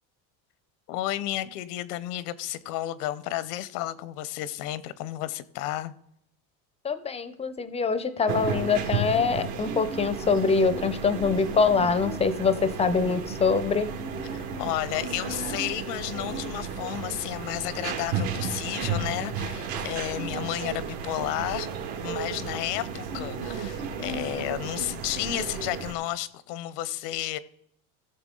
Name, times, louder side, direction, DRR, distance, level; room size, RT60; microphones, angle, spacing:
voice 1, 0.9-5.9 14.3-21.7 22.0-27.4, left 14 dB, 85° left, 0.8 m, -32 dB
voice 2, 6.8-13.9, left 5 dB, 15° left, 0.4 m, -24 dB
sound 1, 8.3-25.9, right 5 dB, 70° right, 2.1 m, -33 dB
16.0 x 6.8 x 3.8 m
supercardioid pair, 135°, 45 cm